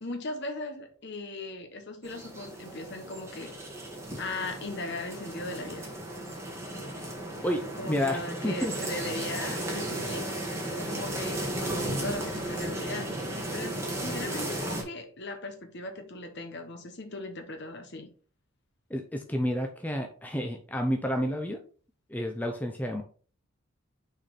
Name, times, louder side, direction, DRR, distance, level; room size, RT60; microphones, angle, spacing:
voice 1, 0.0-3.5 4.2-5.9 7.8-10.3 10.8-13.1 13.5-18.1, left 2 dB, 50° left, 1.2 m, -38 dB
sound 1, 2.0-14.8, right 1 dB, 10° right, 1.5 m, -35 dB
voice 2, 7.4-9.0 18.9-21.6 22.1-23.0, equal, 5° left, 0.5 m, -30 dB
6.2 x 4.3 x 4.0 m
head